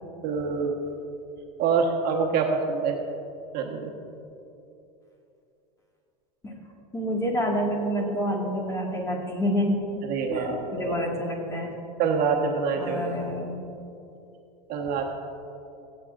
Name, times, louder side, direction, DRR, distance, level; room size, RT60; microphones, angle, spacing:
voice 1, 0.2-0.7 1.6-2.9 3.5-3.9 10.1-10.9 12.0-13.2 14.7-15.1, right 5 dB, 50° right, 1 dB, 1.4 m, -25 dB
voice 2, 6.9-10.0 10.3-11.7 12.7-13.5, equal, 15° left, -1 dB, 2.0 m, -28 dB
23.0 x 7.8 x 2.6 m, 2.8 s
supercardioid pair, 110°, 21 cm